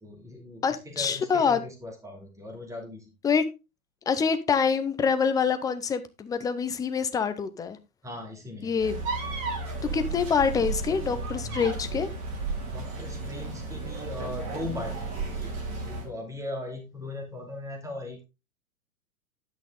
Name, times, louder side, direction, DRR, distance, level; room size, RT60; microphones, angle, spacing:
voice 1, 0.0-3.1 8.0-8.8 12.7-15.5 15.8-18.3, left 2 dB, 5° right, 2.7 m, -39 dB
voice 2, 0.6-1.6 3.2-3.4 4.1-7.8 8.6-9.0 9.8-12.1, left 6 dB, 10° left, 0.6 m, -26 dB
sound 1, 8.8-16.1, right 3 dB, 35° right, 4.4 m, -33 dB
11.0 x 6.1 x 3.9 m
hypercardioid pair, 120°, 43 cm